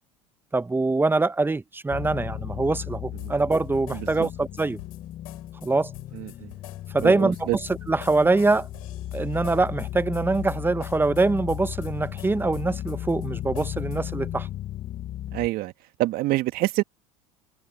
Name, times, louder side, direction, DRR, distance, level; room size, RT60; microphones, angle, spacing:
voice 1, 0.5-4.8 5.6-5.9 6.9-7.5 7.9-8.7 9.1-14.5, right 3 dB, 10° right, 1.1 m, -24 dB
sound 1, 1.9-15.5, left 13 dB, 40° left, 0.8 m, -35 dB
sound 2, 3.2-14.2, left 16 dB, 75° left, 6.2 m, -48 dB
voice 2, 3.9-4.3 6.1-6.5 7.0-7.6 15.3-15.7 16.0-16.8, right 18 dB, 55° right, 1.8 m, -26 dB
open air
hypercardioid pair, 80°, 18 cm